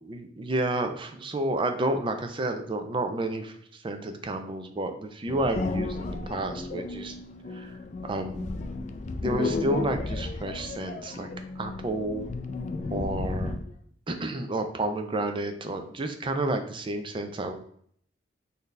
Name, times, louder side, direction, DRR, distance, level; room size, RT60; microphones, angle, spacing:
voice 1, 0.0-7.2 7.5-8.6 9.2-11.3 11.6-12.3 12.9-13.5 14.1-17.6, right 2 dB, 30° right, 6 dB, 0.4 m, -30 dB
sound 1, 5.3-13.8, left 3 dB, 40° left, 0.3 m, -33 dB
4.0 x 2.7 x 3.2 m, 0.63 s
head